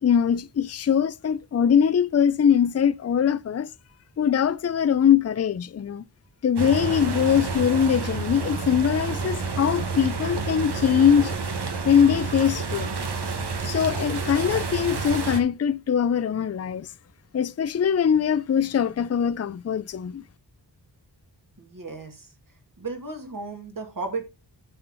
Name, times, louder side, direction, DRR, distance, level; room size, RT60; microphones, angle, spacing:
voice 1, 0.0-3.7 4.2-6.0 6.4-11.4 11.8-12.9 13.6-16.9 17.3-20.2, left 8 dB, 40° left, 0.5 m, -22 dB
sound 1, 6.6-15.4, right 4 dB, 70° right, 1.8 m, -29 dB
voice 2, 21.6-22.3 22.8-24.2, right 3 dB, 50° right, 2.7 m, -34 dB
9.8 x 7.2 x 4.0 m
wide cardioid pair, 115°, 42 cm